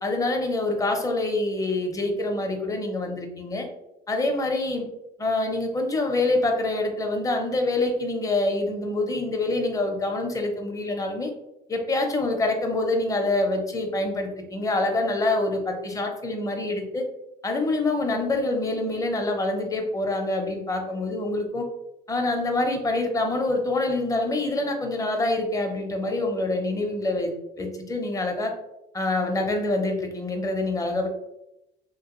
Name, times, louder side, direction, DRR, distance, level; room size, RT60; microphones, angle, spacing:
voice 1, 0.0-3.7 4.1-4.9 5.2-11.3 11.7-17.0 17.4-21.6 22.1-27.3 27.6-28.5 28.9-31.1, left 2 dB, 20° left, 3 dB, 0.7 m, -26 dB
3.1 x 2.9 x 3.0 m, 0.87 s
cardioid pair, 110°, 17 cm